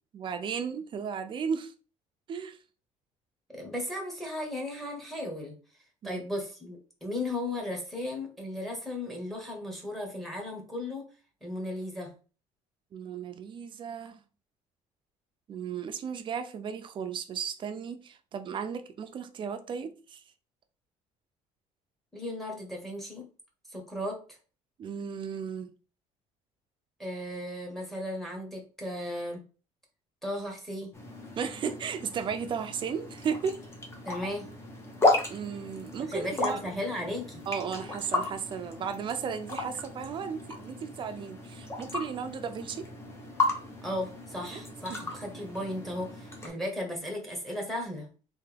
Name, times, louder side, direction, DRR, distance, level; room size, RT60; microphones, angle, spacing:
voice 1, 0.1-1.7 2.3-2.6 6.0-6.2 12.9-14.2 15.5-20.2 24.8-25.7 31.3-33.6 35.3-36.6 37.5-42.9 44.5-44.6, right 7 dB, 35° right, 0.5 m, -35 dB
voice 2, 3.5-5.5 6.0-11.1 11.4-12.1 22.1-23.3 23.7-24.2 27.0-29.4 30.2-30.9 34.0-34.5 36.1-37.4 43.8-48.1, left 1 dB, ahead, 1.2 m, -35 dB
sound 1, 30.9-46.5, left 2 dB, 20° left, 0.9 m, -34 dB
3.4 x 2.8 x 3.4 m
cardioid pair, 135°, 13 cm